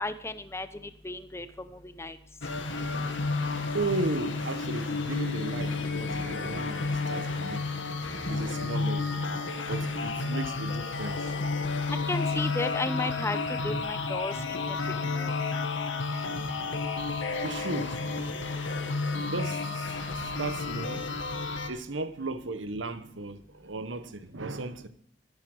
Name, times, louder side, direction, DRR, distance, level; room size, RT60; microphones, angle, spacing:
voice 1, 0.0-2.2 12.1-14.8 15.1-15.3, left 2 dB, 15° left, 0.8 m, -34 dB
sound 1, 2.4-21.7, left 3 dB, 85° left, 1.9 m, -31 dB
sound 2, 2.7-10.5, right 1 dB, 55° right, 2.4 m, -52 dB
voice 2, 3.7-7.8 8.3-9.4 9.7-11.4 13.7-13.8 14.7-15.3 17.4-18.0 19.3-21.1 21.7-24.9, right 2 dB, 85° right, 1.2 m, -36 dB
14.0 x 11.5 x 6.3 m
head